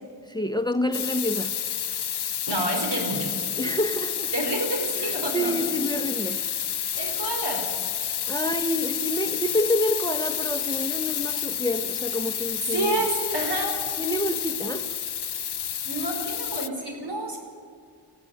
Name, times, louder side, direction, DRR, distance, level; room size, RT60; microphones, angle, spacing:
voice 1, 0.3-1.5 3.6-4.3 5.0-6.4 8.3-13.1 14.0-15.0, left 1 dB, 10° left, 9 dB, 0.9 m, -28 dB
sound 1, 0.9-16.7, left 9 dB, 70° left, 0.6 m, -30 dB
voice 2, 2.5-3.3 4.3-5.5 7.0-7.6 12.7-13.7 15.8-17.4, right 2 dB, 80° right, 1 dB, 5.0 m, -28 dB
20.0 x 14.5 x 9.3 m, 2.1 s
wide cardioid pair, 45°, 41 cm